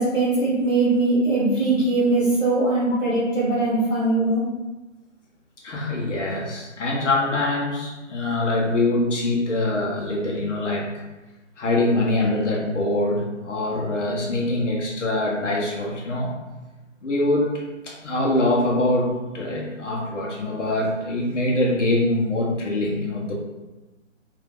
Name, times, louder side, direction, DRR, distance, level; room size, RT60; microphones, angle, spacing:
voice 1, 0.0-4.4, right 2 dB, ahead, -27 dB, 0.5 m, -21 dB
voice 2, 5.6-10.9 11.6-16.3 17.0-23.3, left 2 dB, 65° left, -2 dB, 1.0 m, -24 dB
2.7 x 2.4 x 3.6 m, 1.1 s
hypercardioid pair, 155°, 39 cm